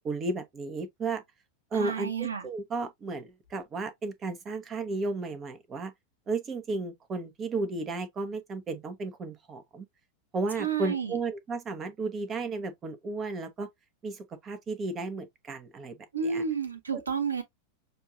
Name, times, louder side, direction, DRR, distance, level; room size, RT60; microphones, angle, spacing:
voice 1, 0.0-1.2 1.7-5.9 6.3-9.9 10.3-13.7 14.0-16.0 16.2-16.4, right 3 dB, 25° right, 1.2 m, -34 dB
voice 2, 1.7-2.4 10.6-11.2 16.1-17.4, right 6 dB, 75° right, 1.5 m, -31 dB
6.7 x 2.7 x 2.5 m
figure-of-eight pair, 90°, 0 cm